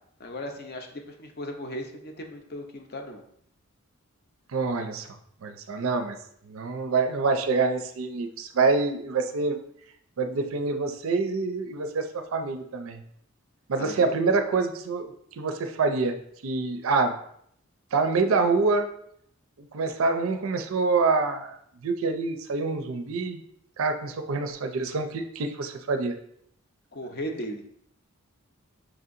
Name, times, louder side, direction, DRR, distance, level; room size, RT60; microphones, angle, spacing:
voice 1, 0.2-3.2 13.8-14.2 26.9-27.7, equal, 45° left, 4 dB, 0.6 m, -36 dB
voice 2, 4.5-6.2 6.4-9.6 10.2-13.0 13.7-17.2 17.9-18.9 19.6-21.6 21.8-23.4 23.8-26.2, right 4 dB, 65° right, 6 dB, 0.4 m, -26 dB
6.0 x 2.7 x 2.5 m, 0.68 s
head